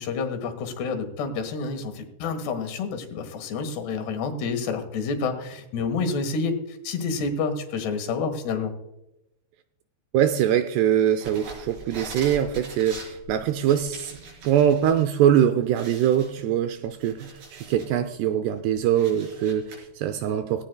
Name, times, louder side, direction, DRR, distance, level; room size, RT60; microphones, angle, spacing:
voice 1, 0.0-8.7, left 4 dB, 65° left, 6 dB, 3.4 m, -29 dB
voice 2, 10.1-14.2 14.4-20.7, right 10 dB, 85° right, 9 dB, 2.4 m, -23 dB
sound 1, 11.1-15.0 15.4-15.5 15.8-17.9 18.4-19.8, right 2 dB, 60° right, 6.5 m, -42 dB
17.5 x 17.0 x 2.3 m, 0.88 s
omnidirectional pair, 5.4 m